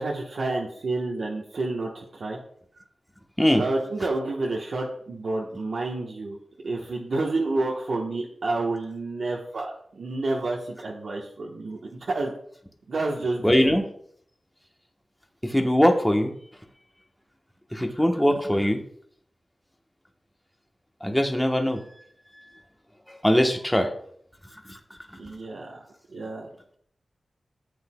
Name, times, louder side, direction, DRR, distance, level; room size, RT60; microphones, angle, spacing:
voice 1, 0.0-2.4 2.7-2.8 3.5-6.4 6.6-12.3 12.9-13.8 25.2-25.8 26.1-26.5, right 2 dB, 75° right, -2 dB, 1.1 m, -29 dB
voice 2, 13.4-13.8 15.5-16.3 17.8-18.8 21.0-21.8 23.2-23.9, equal, 10° left, 3 dB, 1.0 m, -21 dB
11.5 x 8.0 x 2.2 m, 0.65 s
wide cardioid pair, 80°, 0 cm